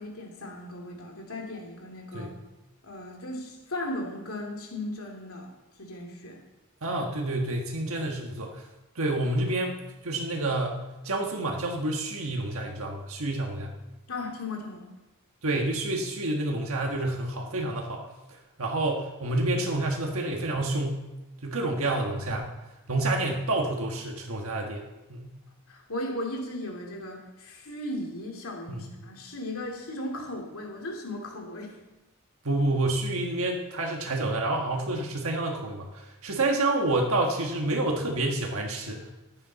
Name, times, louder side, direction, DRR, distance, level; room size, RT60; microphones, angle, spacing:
voice 1, 0.0-2.3 2.8-5.5 5.8-6.4 14.1-14.8 25.7-31.8, left 1 dB, 70° left, 1 dB, 2.7 m, -36 dB
voice 2, 6.8-8.6 8.9-10.8 11.0-13.7 15.4-18.0 18.6-21.0 21.4-22.5 22.9-24.8 25.1-25.3 28.7-28.8 32.4-39.1, right 2 dB, 70° right, 1 dB, 1.5 m, -28 dB
15.0 x 11.0 x 4.1 m, 1.0 s
head